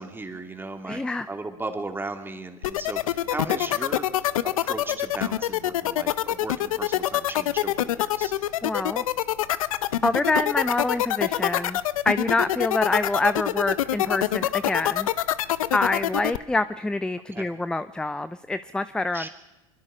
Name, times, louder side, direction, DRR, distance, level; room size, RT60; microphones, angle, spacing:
voice 1, 0.0-8.3 17.3-17.5 19.1-19.3, right 3 dB, 10° right, 5 dB, 2.8 m, -36 dB
voice 2, 0.9-1.3 8.6-9.0 10.0-11.8 12.0-15.1 15.7-19.3, left 2 dB, 5° left, 13 dB, 0.6 m, -26 dB
sound 1, 2.6-16.4, left 13 dB, 85° left, 0.8 m, -24 dB
24.0 x 23.0 x 5.1 m, 1.1 s
hypercardioid pair, 100°, 17 cm